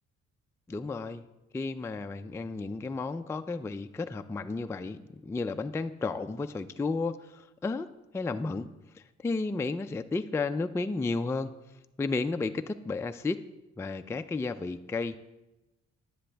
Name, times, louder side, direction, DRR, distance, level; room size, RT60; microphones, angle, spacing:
voice 1, 0.7-1.2 1.5-7.9 8.1-8.7 8.9-11.5 12.0-13.4 13.8-15.2, left 3 dB, 10° left, 8 dB, 0.3 m, -32 dB
9.9 x 9.8 x 3.4 m, 1.0 s
cardioid pair, 90°, 30 cm